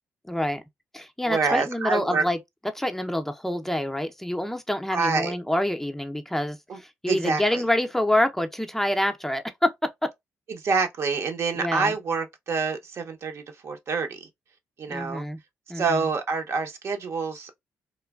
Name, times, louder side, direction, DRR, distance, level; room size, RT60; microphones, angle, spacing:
voice 1, 0.3-0.6 0.9-2.4 2.7-10.1 11.6-11.9 14.9-15.4 15.7-16.0, left 1 dB, 5° left, 0.4 m, -27 dB
voice 2, 1.3-2.2 4.9-5.4 6.7-6.8 7.1-7.6 10.5-14.3 14.8-15.2 15.7-17.5, right 4 dB, 60° right, 0.7 m, -27 dB
3.1 x 2.1 x 2.2 m
cardioid pair, 70°, 5 cm